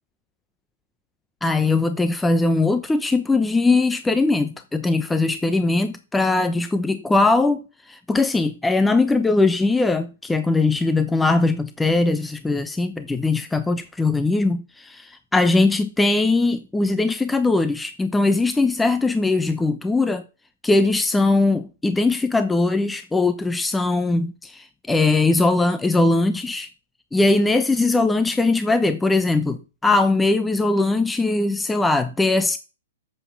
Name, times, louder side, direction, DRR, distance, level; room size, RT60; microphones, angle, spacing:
voice 1, 1.4-20.2 20.6-26.7 27.1-32.6, left 3 dB, 5° left, 0.8 m, -20 dB
11.0 x 7.8 x 7.1 m
figure-of-eight pair, 115°, 0 cm